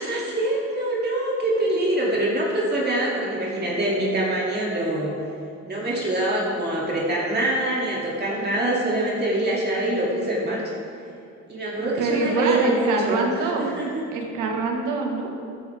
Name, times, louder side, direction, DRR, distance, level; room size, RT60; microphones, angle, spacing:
voice 1, 0.0-5.1 5.6-10.7 11.5-14.0, right 1 dB, 35° right, -4 dB, 2.6 m, -24 dB
voice 2, 11.8-13.8 14.1-15.3, right 3 dB, 90° right, 2 dB, 1.6 m, -25 dB
13.5 x 10.5 x 3.5 m, 2.6 s
cardioid pair, 90°, 30 cm